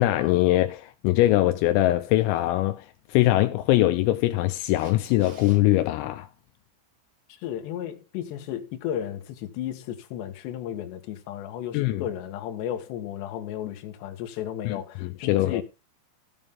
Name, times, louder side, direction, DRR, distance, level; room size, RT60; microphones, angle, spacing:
voice 1, 0.0-6.3 11.7-12.0 14.7-15.6, left 16 dB, 85° left, 3.4 m, -22 dB
Camera, 4.8-5.6 12.3-12.4, right 3 dB, 55° right, 5.6 m, -49 dB
voice 2, 7.3-15.6, left 10 dB, 70° left, 3.2 m, -34 dB
16.0 x 7.2 x 3.6 m
omnidirectional pair, 6.0 m